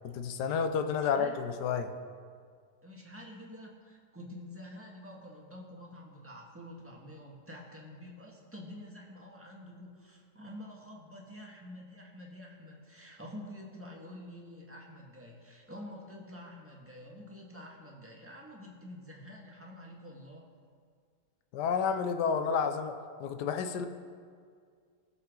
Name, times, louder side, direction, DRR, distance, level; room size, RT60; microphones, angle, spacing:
voice 1, 0.0-1.9 21.5-22.9 23.2-23.9, left 6 dB, 80° left, 8 dB, 1.3 m, -30 dB
voice 2, 1.0-1.4 2.8-20.6, left 1 dB, 10° right, -3 dB, 1.6 m, -48 dB
19.0 x 7.2 x 3.8 m, 2.1 s
omnidirectional pair, 1.8 m